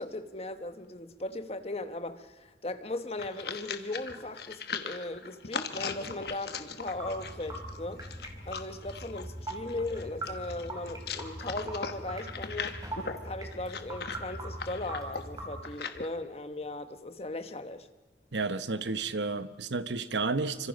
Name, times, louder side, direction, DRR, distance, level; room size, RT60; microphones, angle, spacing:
voice 1, 0.0-8.1 8.4-17.9, left 2 dB, 35° left, 1.1 m, -38 dB
sound 1, 2.9-16.1, left 5 dB, 60° left, 1.2 m, -39 dB
sound 2, 6.8-15.6, right 1 dB, 20° right, 3.5 m, -41 dB
voice 2, 18.3-20.7, right 3 dB, 75° right, 1.0 m, -31 dB
27.5 x 25.5 x 5.2 m
head